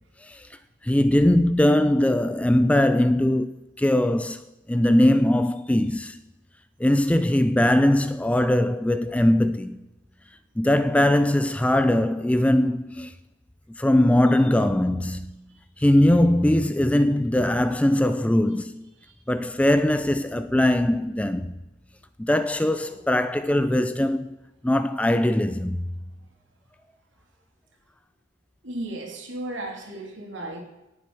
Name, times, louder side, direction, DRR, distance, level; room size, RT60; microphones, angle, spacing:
voice 1, 0.8-6.2 6.8-9.8 10.6-13.1 13.7-15.3 15.8-18.9 19.3-21.5 22.2-24.4 24.6-25.8, left 1 dB, 5° left, 0.3 m, -21 dB
voice 2, 28.6-30.6, right 1 dB, 65° right, 2.5 m, -35 dB
18.5 x 7.6 x 4.7 m
head